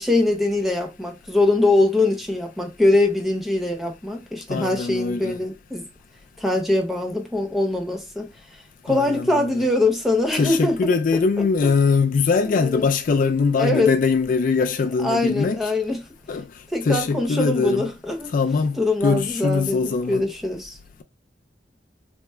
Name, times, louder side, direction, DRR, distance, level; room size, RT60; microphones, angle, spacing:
voice 1, 0.0-5.9 6.4-8.3 8.8-10.8 12.6-12.8 13.6-13.9 15.0-16.0 16.7-18.3 18.8-20.8, left 2 dB, ahead, 0.8 m, -22 dB
voice 2, 4.5-5.4 8.9-9.7 10.3-15.7 16.3-16.5 16.8-17.9 18.3-20.3, left 4 dB, 50° left, 0.3 m, -22 dB
3.5 x 2.0 x 4.2 m
head